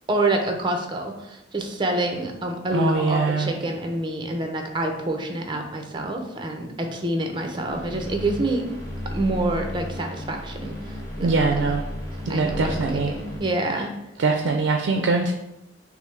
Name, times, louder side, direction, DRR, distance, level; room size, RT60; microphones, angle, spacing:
voice 1, 0.1-8.6 9.1-11.3 12.3-12.8 13.1-13.9, right 2 dB, 25° right, 4 dB, 0.5 m, -27 dB
voice 2, 2.7-3.5 11.2-11.8 12.3-13.1 14.2-15.3, right 3 dB, 75° right, 4 dB, 0.4 m, -22 dB
sound 1, 7.7-13.4, left 1 dB, 15° left, 0.8 m, -34 dB
6.0 x 2.0 x 3.2 m, 0.88 s
head